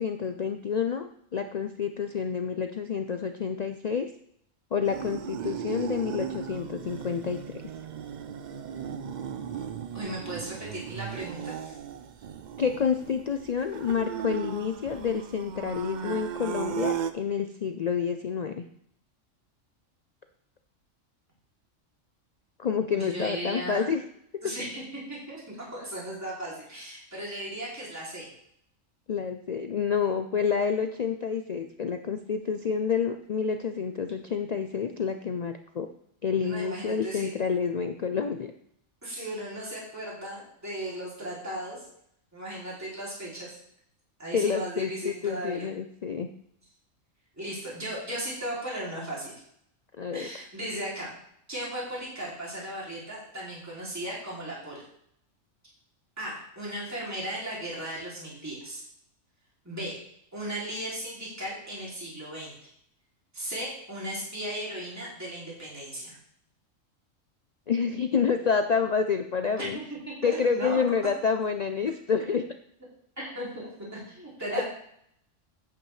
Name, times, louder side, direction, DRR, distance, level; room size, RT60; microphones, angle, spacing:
voice 1, 0.0-4.1 4.7-7.6 12.6-18.6 22.6-24.0 24.4-24.5 29.1-35.9 36.2-38.5 44.3-46.3 50.0-50.5 67.7-69.8 70.2-72.5 74.5-74.6, left 6 dB, 75° left, 7 dB, 0.3 m, -28 dB
sound 1, 4.8-17.1, right 8 dB, 70° right, 0.4 m, -36 dB
voice 2, 9.9-11.8 22.9-23.8 24.4-28.3 36.4-37.3 39.0-41.9 42.3-43.6 44.2-45.7 47.4-49.3 50.1-51.1 51.5-54.8 56.2-58.8 59.6-59.9 60.3-62.5 63.3-66.2 69.6-69.7 70.2-70.8 73.2-74.6, right 1 dB, 10° right, -6 dB, 2.8 m, -36 dB
9.0 x 8.4 x 3.2 m, 0.69 s
omnidirectional pair, 1.4 m